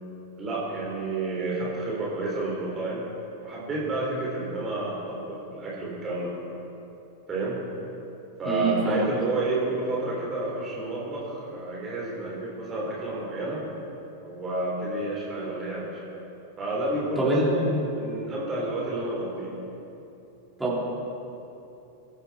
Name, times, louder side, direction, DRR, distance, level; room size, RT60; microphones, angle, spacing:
voice 1, 0.4-3.0 3.4-6.5 7.3-7.6 8.4-13.6 14.2-16.0 16.6-19.5, right 2 dB, 25° right, -5 dB, 4.2 m, -30 dB
voice 2, 8.4-9.0 17.2-17.5 20.6-20.8, right 2 dB, 5° right, -8 dB, 4.5 m, -24 dB
23.0 x 11.5 x 4.5 m, 2.9 s
figure-of-eight pair, 90°, 0 cm